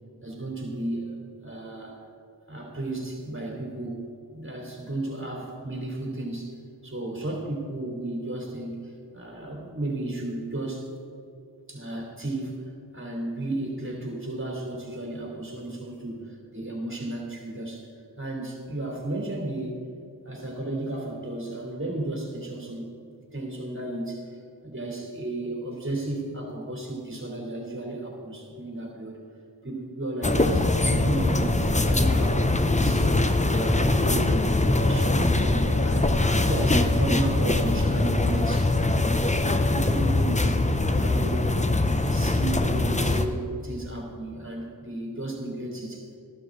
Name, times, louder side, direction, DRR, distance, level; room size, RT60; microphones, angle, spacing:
voice 1, 0.2-1.2 1.4-2.0 2.5-4.1 4.3-6.5 6.8-10.9 11.7-12.6 12.9-17.9 18.2-19.8 20.2-22.9 23.3-29.2 29.6-34.4 34.7-38.8 39.4-41.5 41.9-46.1, right 2 dB, 30° right, -2 dB, 3.1 m, -34 dB
sound 1, 30.2-43.3, left 2 dB, 15° left, 0.6 m, -22 dB
14.0 x 12.0 x 3.8 m, 2.5 s
wide cardioid pair, 65°, 41 cm